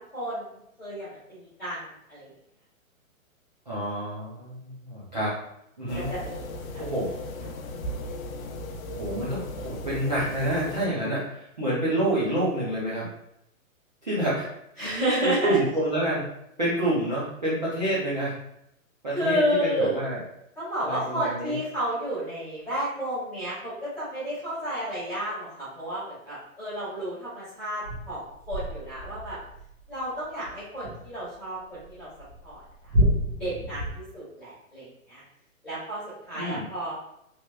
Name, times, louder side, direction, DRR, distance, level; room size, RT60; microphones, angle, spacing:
voice 1, 0.1-1.8 2.1-2.3 6.1-6.8 14.8-15.6 19.1-20.0 20.6-29.4 29.9-32.1 32.4-32.6 33.4-35.2 35.6-37.0, equal, 5° left, -19 dB, 0.9 m, -31 dB
voice 2, 3.7-5.4 5.8-6.1 6.8-7.1 8.9-13.1 14.0-14.5 15.2-16.3 16.6-18.4 19.0-20.2 20.8-21.6 36.3-36.6, right 1 dB, 35° right, -10 dB, 0.5 m, -28 dB
sound 1, 5.9-10.9, left 1 dB, 75° left, 0.6 m, -37 dB
sound 2, 27.8-31.3 31.7-33.9, equal, 90° right, 1.1 m, -29 dB
3.2 x 2.8 x 2.2 m, 0.78 s
hypercardioid pair, 175°, 42 cm